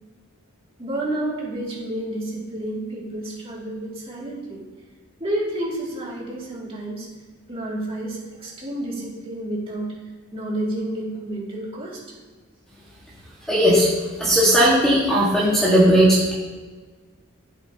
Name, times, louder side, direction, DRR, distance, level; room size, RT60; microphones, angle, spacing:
voice 1, 0.8-4.6 5.2-7.1 7.5-9.9 10.3-12.0, right 1 dB, 25° right, -5 dB, 2.6 m, -30 dB
voice 2, 13.5-13.9 14.2-16.3, equal, ahead, -8 dB, 1.8 m, -17 dB
12.0 x 8.3 x 2.9 m, 1.4 s
head